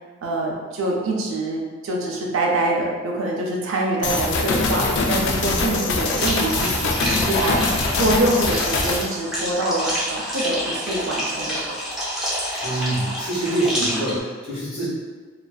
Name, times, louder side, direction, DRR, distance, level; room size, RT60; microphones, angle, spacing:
voice 1, 0.2-7.6 7.9-11.8, right 2 dB, 75° right, -2 dB, 0.4 m, -25 dB
sound 1, 4.0-9.0, left 3 dB, 60° left, 0.3 m, -23 dB
sound 2, 6.2-14.2, equal, ahead, 0.6 m, -28 dB
voice 2, 12.6-14.9, right 1 dB, 30° left, -10 dB, 0.9 m, -25 dB
2.5 x 2.3 x 2.2 m, 1.5 s
head